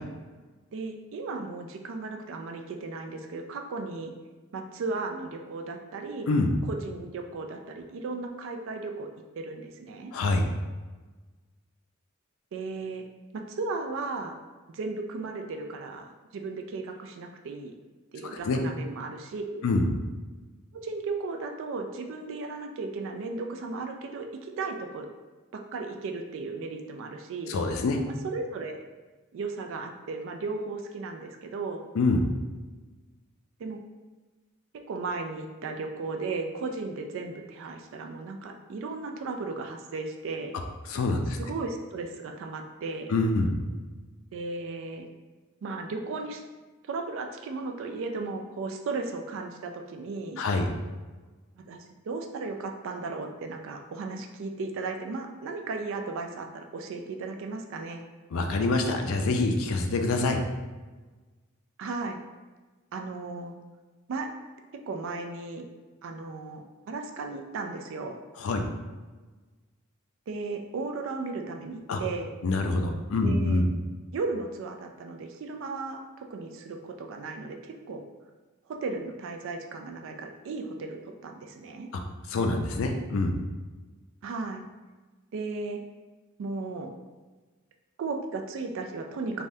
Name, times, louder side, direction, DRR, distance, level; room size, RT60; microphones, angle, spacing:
voice 1, 0.7-4.1 4.5-6.3 6.7-9.1 9.3-10.1 12.5-13.0 13.3-14.3 14.7-17.7 18.1-19.6 20.7-25.1 25.5-27.5 28.2-28.8 29.3-31.8 33.6-33.8 34.9-40.5 41.4-43.1 44.3-45.1 45.6-46.4 46.9-50.4 51.5-58.0 61.8-62.2 62.9-63.5 64.1-64.3 64.9-65.6 66.0-68.2 70.3-72.3 73.2-73.6 74.1-78.0 78.7-81.9 84.2-84.6 85.3-85.8 86.4-86.9 88.0-89.4, right 3 dB, 65° right, 4 dB, 0.3 m, -35 dB
voice 2, 10.1-10.4 18.2-18.6 19.6-19.9 27.5-28.0 31.9-32.2 40.9-41.4 43.1-43.6 50.4-50.7 58.3-60.4 68.4-68.7 71.9-72.0 72.4-73.7 82.3-83.3, left 2 dB, 65° left, 4 dB, 0.4 m, -25 dB
3.4 x 2.1 x 2.6 m, 1.3 s
head